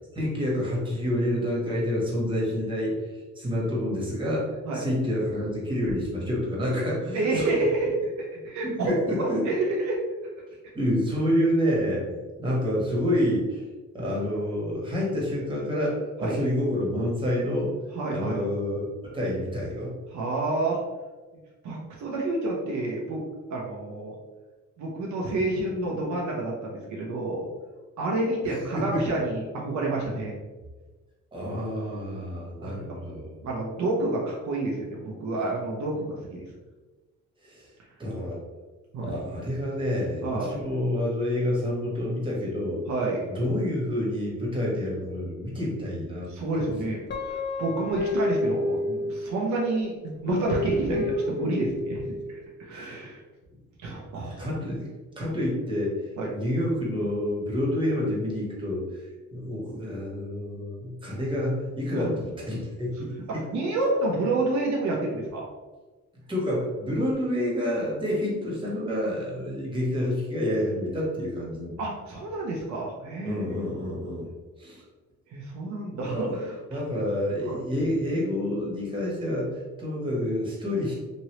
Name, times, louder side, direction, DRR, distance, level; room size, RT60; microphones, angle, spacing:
voice 1, 0.1-3.0 3.3-7.5 8.6-9.4 10.7-12.0 12.4-13.6 13.9-17.7 18.1-19.9 28.7-29.0 31.3-33.3 37.4-37.7 38.0-38.4 39.0-42.8 43.3-46.7 52.7-53.0 54.2-54.9 55.2-56.0 56.3-63.4 66.3-71.8 73.2-74.3 74.6-74.8 76.1-76.3 76.7-80.9, left 1 dB, 15° right, -5 dB, 1.2 m, -28 dB
voice 2, 7.1-8.9 9.2-10.0 16.2-16.4 17.9-18.4 20.1-20.8 21.6-23.2 23.5-24.1 24.8-27.5 28.0-30.3 32.6-32.7 33.4-36.5 38.9-39.1 40.2-40.5 42.9-43.3 46.3-47.0 47.3-52.0 52.3-53.2 53.8-54.5 56.2-56.3 61.9-62.0 63.5-65.5 71.8-73.4 75.3-76.8 77.5-77.6, right 2 dB, 70° right, -2 dB, 0.7 m, -29 dB
Guitar, 47.1-49.6 50.3-52.2, left 2 dB, 35° left, 0.6 m, -29 dB
3.0 x 2.6 x 2.9 m, 1.2 s
cardioid pair, 90°, 30 cm